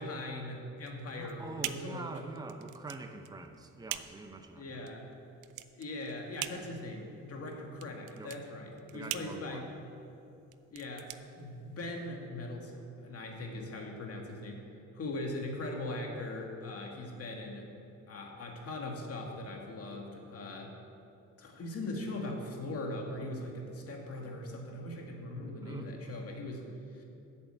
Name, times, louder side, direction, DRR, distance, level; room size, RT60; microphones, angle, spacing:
voice 1, 0.0-2.1 4.6-5.1 5.7-9.7 10.7-11.1 11.4-14.6 14.9-17.7 18.1-20.7 21.4-27.0, left 1 dB, 50° left, 1 dB, 2.0 m, -40 dB
sound 1, 0.8-12.1, right 13 dB, 85° right, 0.5 m, -44 dB
voice 2, 1.1-4.9 8.2-8.4 8.9-9.8 25.6-25.9, right 3 dB, 15° right, 6 dB, 0.8 m, -45 dB
8.3 x 6.9 x 8.0 m, 2.7 s
cardioid pair, 90°, 30 cm